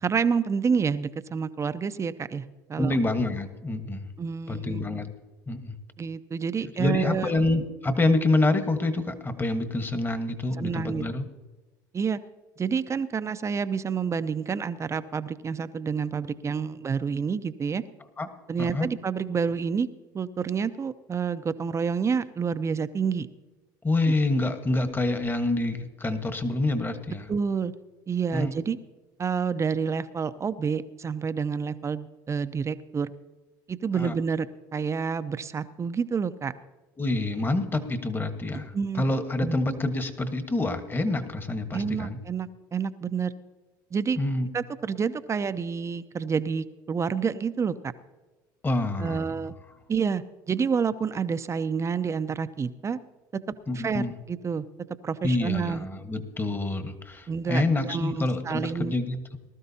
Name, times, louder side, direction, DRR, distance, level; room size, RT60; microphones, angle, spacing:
voice 1, 0.0-2.4 2.7-3.0 4.2-4.9 6.0-7.3 10.6-11.0 11.9-12.2 12.6-17.8 18.5-19.9 20.1-23.3 24.1-24.2 27.3-27.7 28.1-28.8 29.2-33.1 33.7-34.5 34.7-36.5 38.7-39.1 39.4-39.6 41.7-43.3 43.9-44.2 44.5-47.9 49.0-49.5 49.9-53.0 53.7-54.6 55.0-55.9 57.3-58.9, right 6 dB, 30° right, 13 dB, 0.6 m, -28 dB
voice 2, 2.8-4.1 4.5-5.1 5.5-5.7 6.8-11.2 18.2-18.3 18.6-18.9 23.8-27.3 28.3-28.5 34.0-34.1 37.0-42.2 44.2-44.5 48.6-49.4 53.7-54.1 55.2-59.4, left 2 dB, 20° left, 8 dB, 1.4 m, -27 dB
19.5 x 12.5 x 2.8 m, 1.2 s
hypercardioid pair, 80°, 10 cm